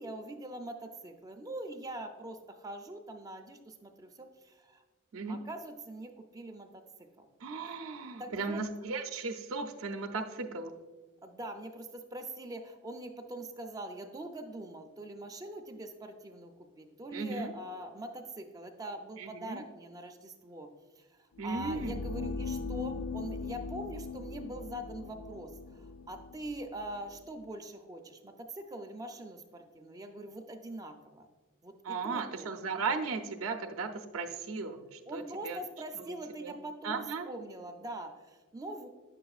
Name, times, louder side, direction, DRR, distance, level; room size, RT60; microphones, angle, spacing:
voice 1, 0.0-4.8 5.3-7.3 7.6-7.8 8.2-8.6 11.2-20.7 21.0-31.3 31.6-32.5 35.1-38.9, right 1 dB, 15° right, 5 dB, 0.4 m, -43 dB
voice 2, 7.4-10.7 17.1-17.5 19.2-19.6 21.4-22.0 31.8-35.6 36.0-36.5 36.8-37.3, right 4 dB, 80° right, 4 dB, 0.5 m, -36 dB
Dissolution at Haymarket, 21.4-27.3, left 4 dB, 70° left, 0.3 m, -40 dB
9.4 x 6.8 x 2.3 m, 1.3 s
head